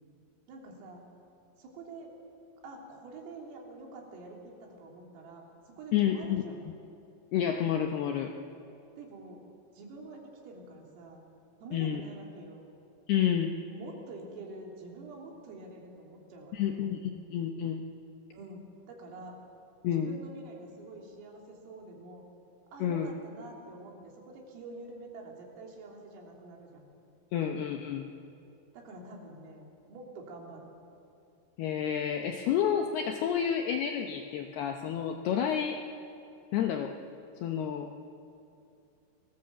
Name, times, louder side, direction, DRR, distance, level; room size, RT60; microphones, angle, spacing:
voice 1, 0.5-1.1 1.6-2.2 2.6-6.6 9.0-9.5 9.7-11.3 11.6-12.7 13.6-16.8 18.3-19.4 19.9-22.2 22.7-26.9 28.7-30.7, right 2 dB, 85° right, -1 dB, 5.9 m, -47 dB
voice 2, 5.9-6.4 7.3-8.3 11.7-12.0 13.1-13.5 16.5-17.8 19.8-20.2 22.8-23.1 27.3-28.1 31.6-35.8 36.5-36.9 37.4-37.9, left 9 dB, 80° left, 4 dB, 2.3 m, -29 dB
28.5 x 19.0 x 7.8 m, 2.6 s
omnidirectional pair, 5.8 m